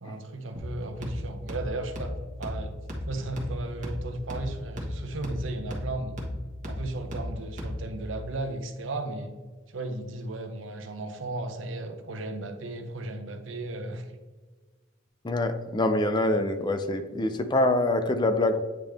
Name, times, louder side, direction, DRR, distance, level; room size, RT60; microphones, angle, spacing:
voice 1, 0.0-2.8 3.1-6.2 6.7-9.3 9.7-14.1, right 2 dB, 80° right, 6 dB, 0.8 m, -35 dB
sound 1, 0.6-8.1, left 1 dB, 40° right, 1.4 m, -36 dB
voice 2, 15.2-18.6, left 2 dB, 25° left, 9 dB, 0.4 m, -25 dB
8.9 x 3.7 x 3.4 m, 1.3 s
head